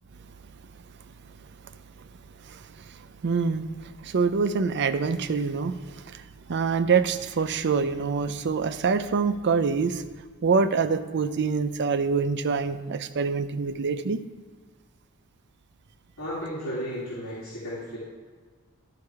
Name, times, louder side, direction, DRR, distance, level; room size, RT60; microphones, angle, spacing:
voice 1, 3.2-6.2 6.5-10.0 10.4-14.2, right 5 dB, 55° right, 11 dB, 0.5 m, -25 dB
voice 2, 16.2-18.0, equal, 80° left, -10 dB, 2.8 m, -34 dB
12.5 x 4.8 x 4.8 m, 1.5 s
head